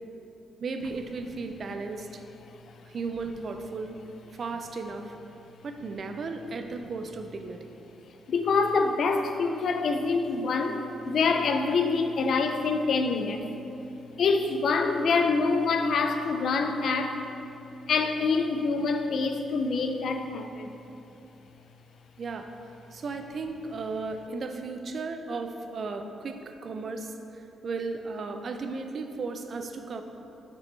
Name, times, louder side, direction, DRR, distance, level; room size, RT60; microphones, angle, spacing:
voice 1, 0.6-2.2 2.8-4.0 4.3-5.2 5.6-7.7 22.2-22.5 22.9-30.0, right 3 dB, 60° right, 6 dB, 0.5 m, -35 dB
voice 2, 8.3-13.5 14.2-17.2 17.9-20.8, left 4 dB, 65° left, 6 dB, 0.4 m, -26 dB
6.6 x 5.2 x 3.3 m, 2.9 s
supercardioid pair, 55°, 0 cm